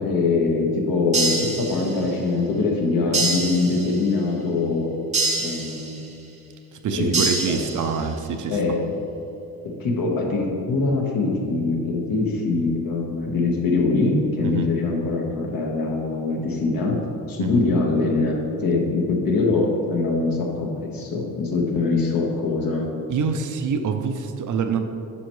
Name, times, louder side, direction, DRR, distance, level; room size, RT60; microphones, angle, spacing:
voice 1, 0.0-4.9 5.4-6.1 6.9-7.2 7.5-7.6 8.5-8.8 9.8-17.0 17.3-22.9, left 3 dB, 65° left, 0 dB, 1.3 m, -23 dB
sound 1, 1.1-2.2 3.1-4.2 5.1-6.2 7.1-8.2, right 2 dB, 20° right, 0.8 m, -26 dB
voice 2, 6.7-8.8 14.4-14.7 17.4-17.6 23.1-24.8, right 6 dB, 55° right, 6 dB, 0.6 m, -26 dB
9.8 x 5.6 x 3.1 m, 2.6 s
cardioid pair, 150°, 38 cm